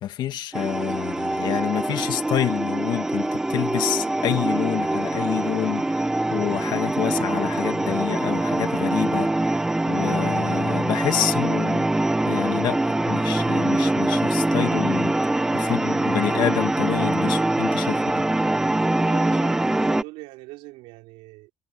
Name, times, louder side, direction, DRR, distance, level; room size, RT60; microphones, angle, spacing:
voice 1, 0.0-6.0 6.3-9.6 9.9-15.2 15.5-18.2, left 11 dB, 45° left, 2.2 m, -28 dB
sound 1, 0.5-20.0, right 2 dB, 5° right, 0.4 m, -23 dB
voice 2, 19.0-21.5, right 20 dB, 85° right, 3.4 m, -42 dB
cardioid pair, 160°, 10 cm